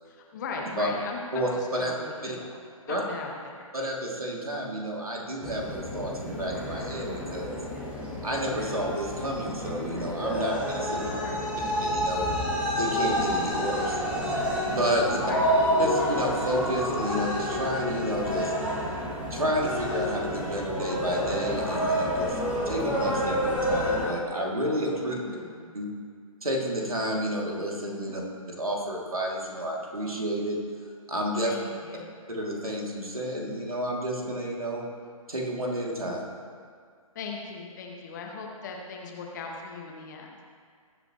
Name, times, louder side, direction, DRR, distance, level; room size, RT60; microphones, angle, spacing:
voice 1, 0.1-2.6 2.9-3.7 11.1-11.8 15.2-15.7 25.1-25.6 28.1-28.2 31.5-32.0 37.1-40.3, left 4 dB, 30° left, 0 dB, 1.5 m, -39 dB
voice 2, 1.3-1.9 2.2-2.4 2.9-3.0 3.7-7.6 8.2-11.1 11.8-12.3 12.8-15.2 15.8-18.5 19.3-22.4 22.7-25.1 25.7-25.9 26.4-28.2 28.6-30.6 31.1-31.5 32.3-34.8 35.3-36.2, equal, 75° right, -2 dB, 2.8 m, -30 dB
sound 1, 5.4-24.1, equal, 5° right, 1.5 m, -29 dB
20.0 x 7.9 x 3.1 m, 2.1 s
figure-of-eight pair, 135°, 19 cm